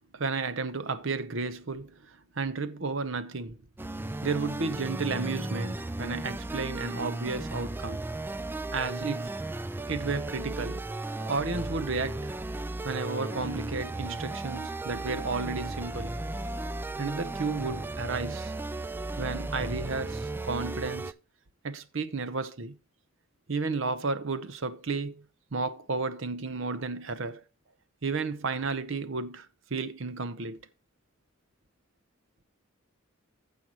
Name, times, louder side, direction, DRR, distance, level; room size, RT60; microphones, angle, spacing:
voice 1, 0.1-3.6 4.2-8.0 8.7-9.3 9.9-10.8 11.2-12.3 12.8-16.1 17.0-18.5 19.2-21.1 21.6-22.8 23.5-25.2 25.5-27.4 28.0-30.7, right 4 dB, 65° right, 0.8 m, -33 dB
sound 1, 3.8-21.1, right 2 dB, 10° right, 0.3 m, -35 dB
15.0 x 5.6 x 2.9 m
head